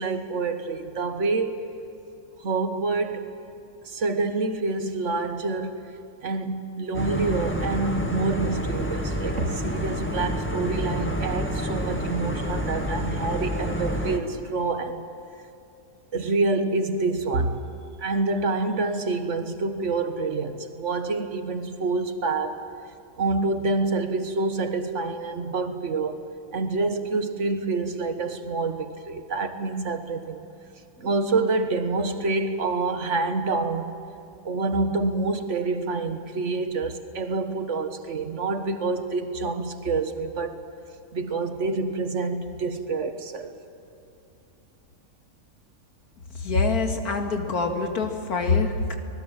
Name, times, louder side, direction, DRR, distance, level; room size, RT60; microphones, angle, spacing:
voice 1, 0.0-1.6 2.4-3.3 3.8-5.9 6.2-15.1 16.1-17.6 18.0-22.6 23.2-26.2 26.5-30.4 31.0-34.0 34.4-40.6 41.1-43.5, right 3 dB, 55° right, 8 dB, 1.7 m, -27 dB
sound 1, 6.9-14.2, equal, 10° left, 1.6 m, -28 dB
voice 2, 46.3-48.9, left 4 dB, 75° left, 4 dB, 2.5 m, -25 dB
25.5 x 19.5 x 7.4 m, 2.9 s
omnidirectional pair, 1.6 m